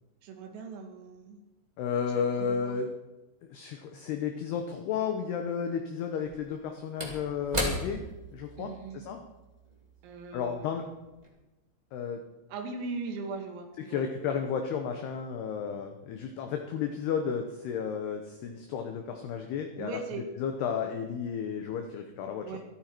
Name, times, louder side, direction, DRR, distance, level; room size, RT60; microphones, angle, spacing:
voice 1, 0.2-1.4 2.1-2.8 8.6-9.1 10.0-10.7 12.5-14.0 19.8-20.3 22.4-22.7, right 4 dB, 85° right, 4 dB, 4.6 m, -39 dB
voice 2, 1.8-2.9 3.5-8.0 8.3-9.2 10.3-10.9 11.9-12.2 13.9-22.5, left 7 dB, 75° left, 5 dB, 2.5 m, -33 dB
Slam / Wood, 4.5-4.6 6.1-10.8 11.1-11.3, equal, 15° right, 1.6 m, -38 dB
26.0 x 9.2 x 4.5 m, 1.1 s
omnidirectional pair, 5.9 m